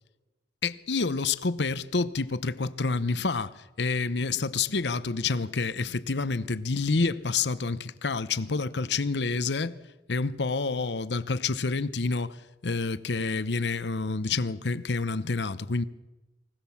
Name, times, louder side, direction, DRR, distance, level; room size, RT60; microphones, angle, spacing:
voice 1, 0.6-9.8 10.1-15.8, left 4 dB, 75° left, 0.9 m, -28 dB
24.5 x 17.5 x 7.1 m
head